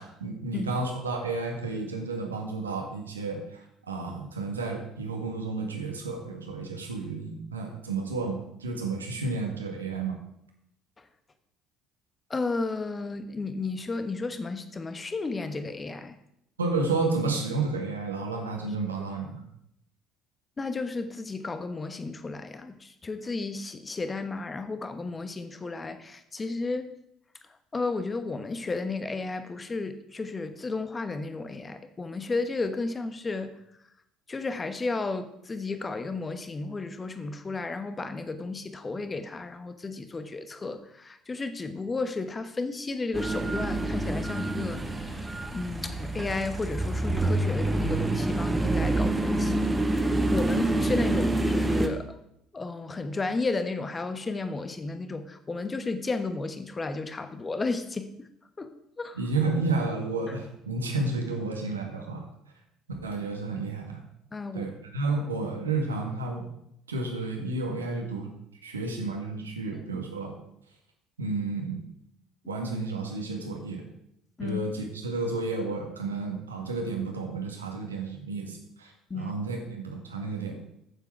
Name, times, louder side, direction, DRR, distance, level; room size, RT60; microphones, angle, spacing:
voice 1, 0.0-10.2 16.6-19.4 59.2-62.3 63.0-64.0 64.5-66.5 66.9-68.3 68.6-70.3 71.2-71.8 72.5-73.8 74.4-80.7, right 3 dB, 80° right, 2 dB, 1.9 m, -31 dB
voice 2, 12.3-16.1 20.6-26.9 27.7-33.6 34.3-52.2 52.5-58.3 58.6-59.2 60.3-60.4 64.3-64.7 69.9-70.0 74.4-74.6 79.1-79.3, left 3 dB, 25° left, 10 dB, 1.2 m, -33 dB
sound 1, 43.1-51.9, right 2 dB, 15° right, 1.5 m, -27 dB
14.0 x 7.4 x 4.6 m, 0.78 s
figure-of-eight pair, 55°, 0 cm